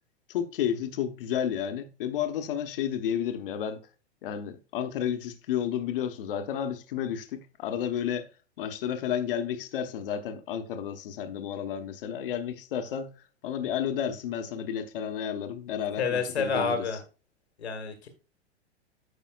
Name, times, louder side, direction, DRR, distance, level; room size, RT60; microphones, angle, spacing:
voice 1, 0.3-3.8 4.2-8.3 8.6-13.1 13.4-16.8, left 9 dB, 55° left, 1.2 m, -31 dB
voice 2, 16.0-17.0 17.6-18.1, left 5 dB, 70° left, 1.7 m, -28 dB
13.0 x 5.4 x 2.4 m
figure-of-eight pair, 100°, 33 cm